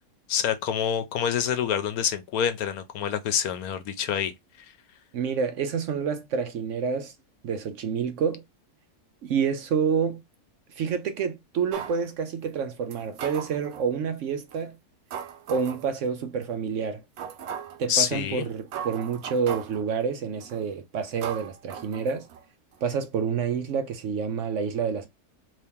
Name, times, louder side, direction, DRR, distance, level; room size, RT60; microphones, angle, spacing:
voice 1, 0.3-4.3 4.6-4.7 17.9-18.5, left 9 dB, 75° left, 1.1 m, -27 dB
voice 2, 5.1-7.1 7.4-8.4 9.2-10.2 10.7-14.8 15.5-17.0 17.8-22.3 22.8-25.1, right 6 dB, 65° right, 0.8 m, -28 dB
sound 1, 11.7-12.0 12.9-13.9 14.5-14.6 15.1-15.9 16.4-16.5 17.2-17.8 18.4-18.5 18.7-19.8 20.4-20.7 21.2-22.4 22.7-22.8, right 8 dB, 85° right, 1.1 m, -38 dB
3.0 x 2.8 x 3.5 m
omnidirectional pair, 1.6 m